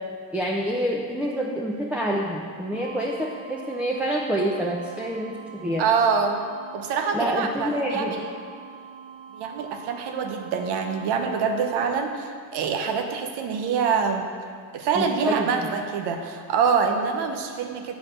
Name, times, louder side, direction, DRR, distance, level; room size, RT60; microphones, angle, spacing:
voice 1, 0.3-5.8 7.1-8.1 14.9-15.7, equal, 5° right, -2 dB, 0.7 m, -27 dB
sound 1, 2.7-11.8, right 7 dB, 40° right, 1.2 m, -44 dB
voice 2, 5.8-6.4 6.7-8.2 9.3-14.3 14.7-17.9, right 6 dB, 75° right, 5 dB, 1.0 m, -25 dB
8.3 x 4.0 x 6.6 m, 2.2 s
supercardioid pair, 90°, 41 cm